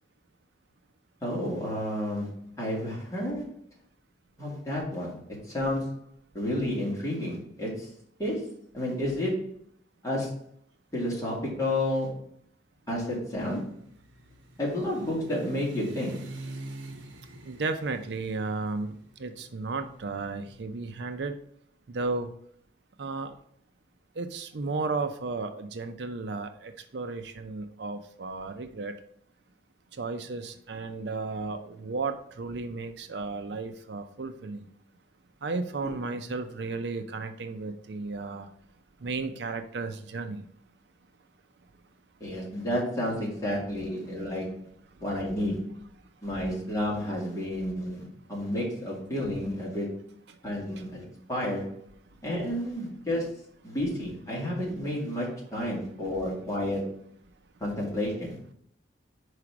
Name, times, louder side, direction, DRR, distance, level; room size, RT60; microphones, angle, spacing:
voice 1, 1.2-2.3 2.6-3.5 4.4-5.2 5.5-6.0 6.3-7.9 8.2-9.5 10.0-10.4 10.9-12.2 12.9-13.7 14.6-16.2 35.8-35.9 42.2-44.6 45.0-45.8 46.2-50.0 50.4-51.8 52.2-53.4 53.6-56.9 57.6-58.4, left 1 dB, 15° left, -5 dB, 2.4 m, -31 dB
sound 1, 13.2-21.0, right 1 dB, 85° right, 0.9 m, -45 dB
voice 2, 17.4-21.3 21.9-22.3 23.0-23.3 24.2-29.0 29.9-34.7 35.4-38.5 39.0-40.4 50.3-50.4, right 3 dB, 65° right, 8 dB, 0.5 m, -34 dB
4.9 x 4.8 x 5.8 m, 0.66 s
head